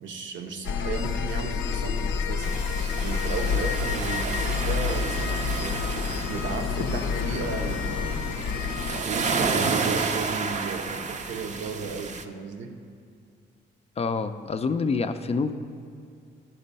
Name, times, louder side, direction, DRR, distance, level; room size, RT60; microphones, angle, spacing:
voice 1, 0.0-2.6 3.0-8.4 8.7-12.7, right 4 dB, 70° right, 5 dB, 0.8 m, -34 dB
sound 1, 0.6-9.0, left 6 dB, 85° left, 0.5 m, -28 dB
sound 2, 2.4-12.2, right 4 dB, 35° right, 0.5 m, -31 dB
voice 2, 14.0-15.5, left 4 dB, 30° left, 9 dB, 0.4 m, -27 dB
11.0 x 4.4 x 5.3 m, 2.4 s
cardioid pair, 90°, 20 cm